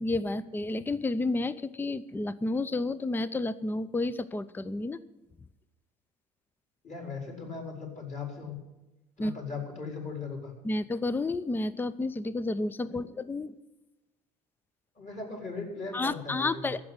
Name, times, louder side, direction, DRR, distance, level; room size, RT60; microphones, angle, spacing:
voice 1, 0.0-5.0 9.2-9.3 10.6-13.5 15.9-16.8, left 2 dB, 10° left, 17 dB, 0.6 m, -31 dB
voice 2, 6.8-8.6 9.2-10.5 15.0-16.7, left 4 dB, 35° left, 1 dB, 4.4 m, -38 dB
14.5 x 6.3 x 9.6 m, 1.0 s
hypercardioid pair, 70°, 21 cm